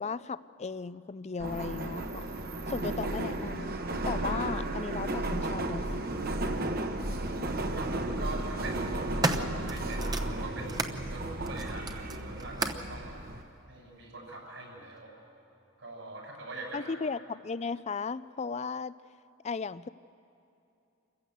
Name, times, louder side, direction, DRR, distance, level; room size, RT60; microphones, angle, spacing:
voice 1, 0.0-2.2 2.7-3.8 4.1-6.0 16.7-18.9 19.4-19.9, left 5 dB, 35° left, 16 dB, 0.4 m, -36 dB
Subway metro underground, 1.4-13.4, right 1 dB, 50° right, 1.2 m, -34 dB
sound 1, 6.6-6.7 7.8-8.1 8.7-11.0 11.4-12.9 13.8-13.9, right 2 dB, 20° right, 0.9 m, -34 dB
voice 2, 7.7-9.0 9.3-13.1 13.7-15.1 15.8-16.9, right 2 dB, 75° right, -1 dB, 6.9 m, -43 dB
27.5 x 15.0 x 8.1 m, 2.8 s
head